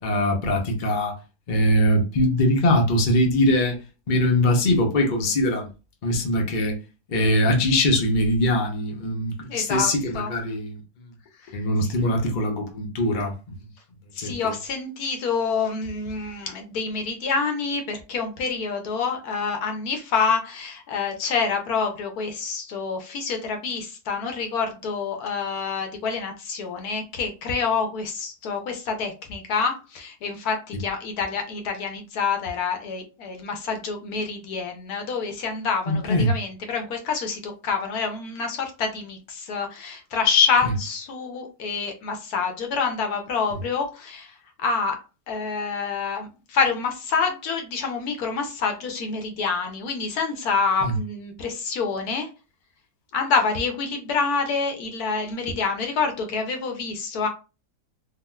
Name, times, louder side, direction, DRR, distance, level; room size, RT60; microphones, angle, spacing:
voice 1, 0.0-1.1 1.5-3.7 4.1-5.7 6.0-6.8 7.1-10.8 11.5-13.3 14.2-14.6 35.9-36.3 40.6-40.7 43.5-43.6 50.8-51.0, left 1 dB, 45° left, 0.6 m, -22 dB
voice 2, 9.5-10.3 11.4-11.5 14.1-44.4 44.6-45.0 45.3-52.3 53.1-57.3, left 5 dB, 70° left, 1.1 m, -27 dB
3.6 x 2.3 x 2.2 m
omnidirectional pair, 1.7 m